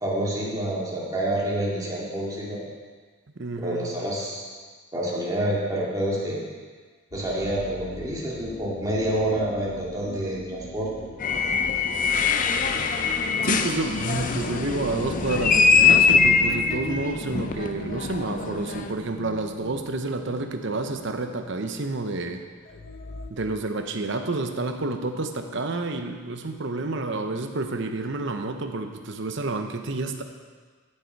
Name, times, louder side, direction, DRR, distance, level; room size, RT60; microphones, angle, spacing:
voice 1, 0.0-2.6 3.6-4.4 4.9-6.4 7.1-10.9, right 1 dB, 15° right, -6 dB, 2.3 m, -28 dB
voice 2, 3.4-4.0 13.4-22.4 23.3-30.2, right 2 dB, 60° right, 6 dB, 0.8 m, -29 dB
sound 1, 7.1-21.8 22.1-22.3 22.6-23.3, left 1 dB, 60° left, 1.0 m, -41 dB
sound 2, 11.2-18.9, left 5 dB, 40° left, 0.6 m, -23 dB
13.5 x 6.6 x 4.6 m, 1.5 s
head